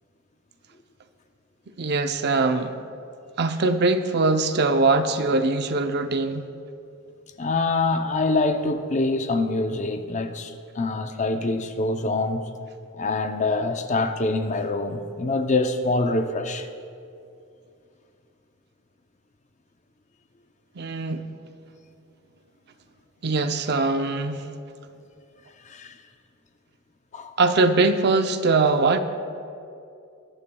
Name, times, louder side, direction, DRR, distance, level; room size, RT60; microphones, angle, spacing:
voice 1, 1.8-2.8 3.4-6.4 20.8-21.3 23.2-24.5 27.4-29.0, right 3 dB, 50° right, 8 dB, 0.6 m, -22 dB
voice 2, 7.4-12.5 12.9-16.7 25.6-26.0 27.1-27.3, left 3 dB, 35° left, 7 dB, 0.6 m, -25 dB
20.5 x 11.5 x 2.3 m, 2.5 s
head